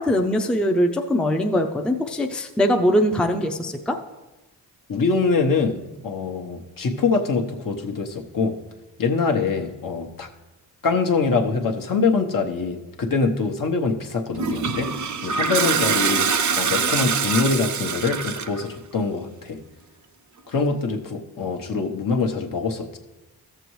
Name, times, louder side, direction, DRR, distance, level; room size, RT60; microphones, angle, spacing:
voice 1, 0.0-4.0, equal, ahead, 4 dB, 0.5 m, -21 dB
voice 2, 4.9-5.8 6.0-8.6 9.0-10.3 10.8-14.9 15.2-16.3 16.6-19.6 20.5-23.0, left 4 dB, 55° left, 3 dB, 1.0 m, -24 dB
Toilet flush, 14.3-18.6, right 6 dB, 50° right, 0.6 m, -24 dB
13.5 x 6.8 x 3.1 m, 1.1 s
cardioid pair, 65°, 39 cm